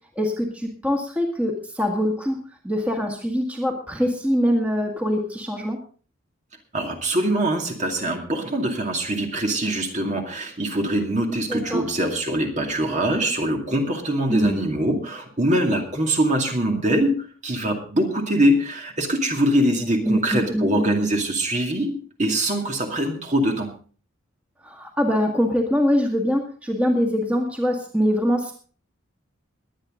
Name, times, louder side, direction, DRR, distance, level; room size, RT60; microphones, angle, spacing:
voice 1, 0.2-2.4 2.6-5.8 11.5-11.8 14.3-14.6 20.1-20.9 24.6-28.5, equal, 5° right, 1 dB, 2.0 m, -23 dB
voice 2, 6.7-23.7, right 1 dB, 35° right, 2 dB, 2.3 m, -23 dB
21.0 x 9.6 x 3.8 m, 0.40 s
head